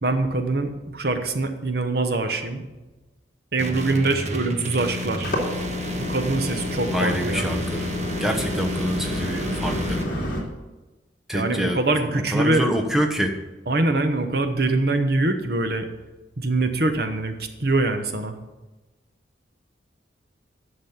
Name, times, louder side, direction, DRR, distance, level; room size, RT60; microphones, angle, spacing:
voice 1, 0.0-2.6 3.5-5.3 6.1-7.5 11.3-12.6 13.7-15.9 16.4-18.4, right 2 dB, 55° right, 7 dB, 1.1 m, -23 dB
sound 1, 3.6-10.0, left 2 dB, 40° right, 1.2 m, -31 dB
sound 2, 5.0-10.4, equal, 50° left, 2.6 m, -30 dB
voice 2, 6.7-7.9 8.2-10.0 11.3-11.8 12.3-13.4, equal, ahead, 2 dB, 1.1 m, -26 dB
11.0 x 6.4 x 7.2 m, 1.1 s
head